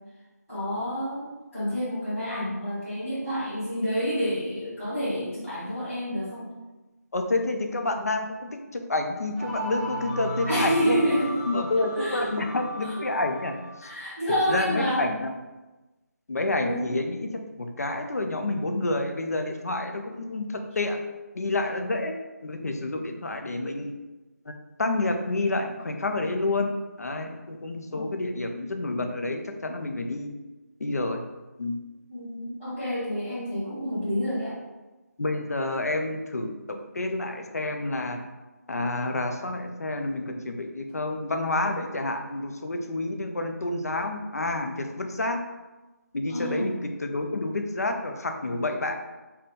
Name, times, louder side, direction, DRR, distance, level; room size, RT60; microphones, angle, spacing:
voice 1, 0.5-6.5 10.4-11.4 11.7-12.3 12.8-13.0 13.8-15.1 16.6-17.0 27.9-28.1 32.1-34.6 46.3-46.7, equal, ahead, -31 dB, 0.3 m, -28 dB
voice 2, 7.1-11.0 11.5-13.6 14.5-15.3 16.3-17.3 17.6-21.0 21.4-23.9 24.8-26.7 27.0-30.3 30.8-31.2 31.6-31.8 35.2-38.2 38.7-45.5 46.1-46.7 47.0-48.9, left 2 dB, 60° left, 5 dB, 0.5 m, -29 dB
sound 1, 9.3-13.9, equal, 30° right, 0.9 m, -36 dB
4.1 x 2.2 x 3.5 m, 1.1 s
figure-of-eight pair, 175°, 9 cm